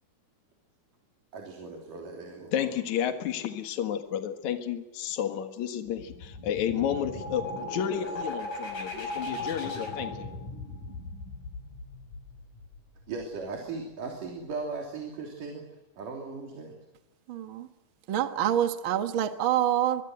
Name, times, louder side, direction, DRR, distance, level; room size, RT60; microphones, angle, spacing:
voice 1, 1.3-2.7 13.1-15.7 16.0-16.8, right 4 dB, 85° right, 4.8 m, -38 dB
voice 2, 2.5-10.3, left 9 dB, 65° left, 2.9 m, -31 dB
sound 1, 5.9-13.5, left 2 dB, 90° left, 7.6 m, -38 dB
voice 3, 17.3-17.7 18.1-20.0, right 11 dB, 50° right, 1.8 m, -26 dB
24.5 x 23.0 x 7.9 m
omnidirectional pair, 3.6 m